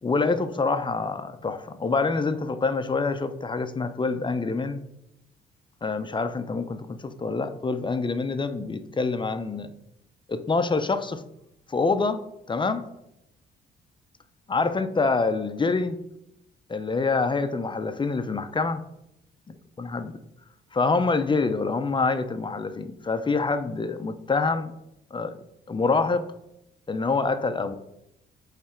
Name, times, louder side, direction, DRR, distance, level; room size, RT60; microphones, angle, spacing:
voice 1, 0.0-4.8 5.8-9.7 10.3-11.2 11.7-12.8 14.5-16.0 16.7-18.8 19.8-20.1 20.7-24.7 25.1-25.4 25.7-26.3 26.9-27.7, left 4 dB, 25° left, 9 dB, 0.6 m, -26 dB
8.5 x 3.3 x 4.4 m, 0.83 s
cardioid pair, 90°, 20 cm